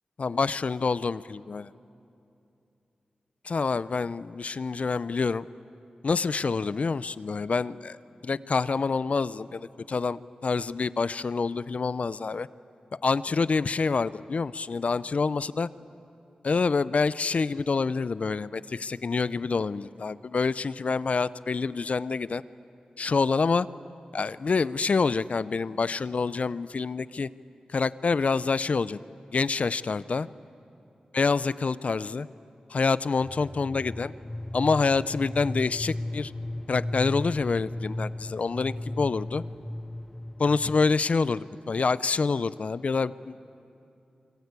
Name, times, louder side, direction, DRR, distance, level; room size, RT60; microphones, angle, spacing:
voice 1, 0.2-1.7 3.4-5.5 6.0-8.0 8.2-12.5 13.0-15.7 16.4-22.4 23.0-23.7 24.1-27.3 27.7-29.0 29.3-30.3 31.1-32.3 32.7-34.1 34.5-36.3 36.7-39.4 40.4-43.4, left 4 dB, 60° left, 17 dB, 0.6 m, -27 dB
sound 1, 33.2-41.0, left 1 dB, 15° left, 0.8 m, -36 dB
25.0 x 24.5 x 8.3 m, 2.7 s
cardioid pair, 50°, 3 cm